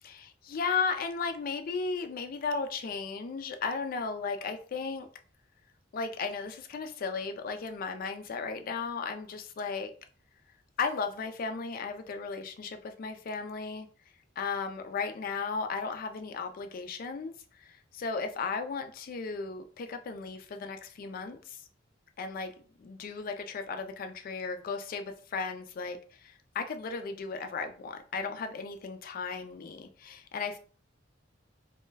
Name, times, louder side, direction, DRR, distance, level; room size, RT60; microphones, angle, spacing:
voice 1, 0.0-5.1 5.9-9.9 10.8-13.9 14.4-17.3 17.6-21.6 22.2-22.5 22.8-30.6, left 5 dB, 50° left, 0.3 m, -35 dB
2.2 x 2.1 x 3.2 m
head